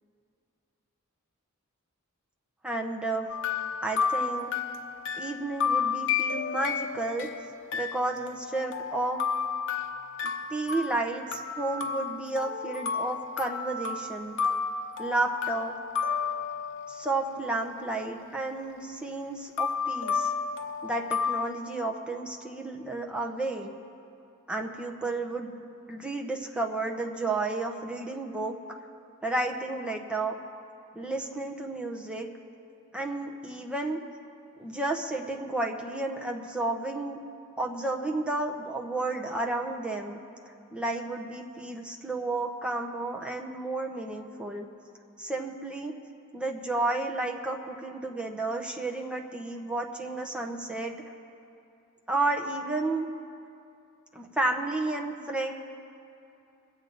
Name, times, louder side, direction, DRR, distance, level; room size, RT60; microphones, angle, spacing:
voice 1, 2.6-3.3 3.8-4.5 5.2-7.3 7.7-9.2 10.5-14.4 15.0-15.7 16.9-20.3 20.8-23.7 24.5-25.6 25.9-28.6 29.2-30.4 30.9-32.3 32.9-34.0 34.6-37.2 37.6-40.2 40.7-44.6 45.2-45.9 46.3-51.0 52.1-53.1 54.1-55.5, right 2 dB, 5° right, 1 dB, 0.9 m, -32 dB
sound 1, 3.3-17.1 19.6-21.4, left 6 dB, 60° left, 0.9 m, -31 dB
23.5 x 8.1 x 4.0 m, 2.7 s
head